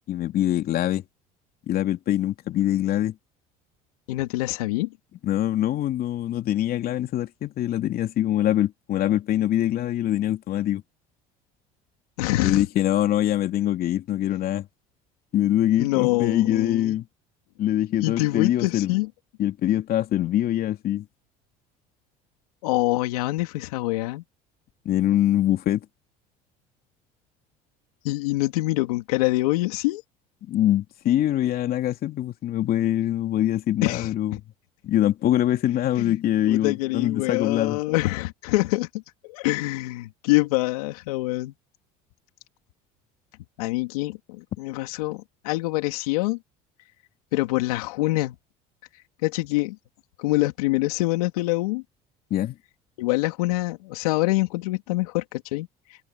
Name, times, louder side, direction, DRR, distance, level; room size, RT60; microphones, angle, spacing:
voice 1, 0.1-1.0 1.7-3.1 5.2-10.8 12.4-14.7 15.3-17.0 17.6-18.9 19.4-21.0 24.8-25.8 30.5-34.4 34.8-37.8 52.3-52.6, left 12 dB, 55° left, 3.0 m, -23 dB
voice 2, 4.1-4.9 12.2-12.7 15.8-17.0 18.0-19.1 22.6-24.2 28.0-30.0 33.8-34.4 36.0-36.2 36.4-38.9 39.2-41.5 43.6-46.4 47.3-48.4 49.2-49.8 50.2-51.8 53.0-55.7, left 20 dB, 85° left, 3.5 m, -25 dB
open air
supercardioid pair, 80°, 19 cm